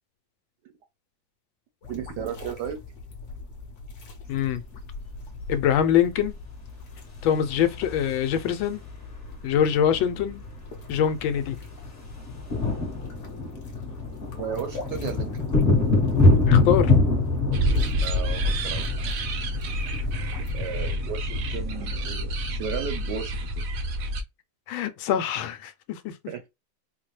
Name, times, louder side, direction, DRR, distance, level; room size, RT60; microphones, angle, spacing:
sound 1, 1.8-20.8, left 3 dB, 50° left, 0.9 m, -42 dB
voice 1, 1.9-2.8 14.3-15.3 18.0-18.9 19.9-20.0 20.5-23.6 26.3-26.5, right 8 dB, 70° right, 1.0 m, -34 dB
voice 2, 4.3-4.6 5.5-6.4 7.2-8.8 9.4-10.4 10.9-11.6 16.5-16.9 24.7-26.1, left 9 dB, 75° left, 1.3 m, -24 dB
sound 2, 7.3-8.9 10.2-10.3 10.5-10.7 11.0-23.1, left 3 dB, 30° left, 1.2 m, -25 dB
sound 3, 17.5-24.2, right 1 dB, 90° right, 0.7 m, -29 dB
4.1 x 2.2 x 3.0 m
omnidirectional pair, 2.3 m